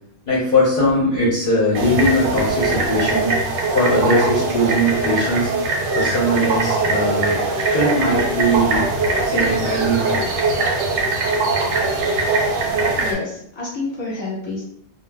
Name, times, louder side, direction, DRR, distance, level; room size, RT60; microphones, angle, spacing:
voice 1, 0.3-3.3 3.7-5.5 6.0-7.4 7.7-8.9 9.2-10.2, equal, 50° left, -6 dB, 0.7 m, -20 dB
sound 1, 1.7-13.1, right 3 dB, 85° right, 1.0 m, -21 dB
voice 2, 13.0-14.6, left 3 dB, 25° left, -7 dB, 1.0 m, -28 dB
2.2 x 2.1 x 3.4 m, 0.72 s
omnidirectional pair, 1.4 m